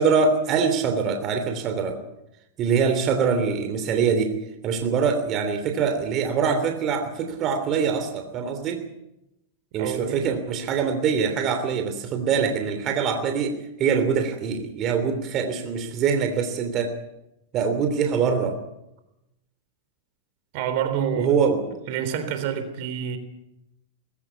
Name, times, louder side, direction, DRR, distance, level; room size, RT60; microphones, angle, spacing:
voice 1, 0.0-2.0 2.6-4.3 4.6-8.9 9.7-16.9 17.5-18.6 21.1-21.8, right 6 dB, 40° right, 7 dB, 3.1 m, -24 dB
voice 2, 9.8-10.3 12.3-12.5 20.5-21.3 21.9-23.2, right 8 dB, 55° right, 10 dB, 3.7 m, -28 dB
20.0 x 16.5 x 8.5 m, 0.88 s
hypercardioid pair, 115°, 0 cm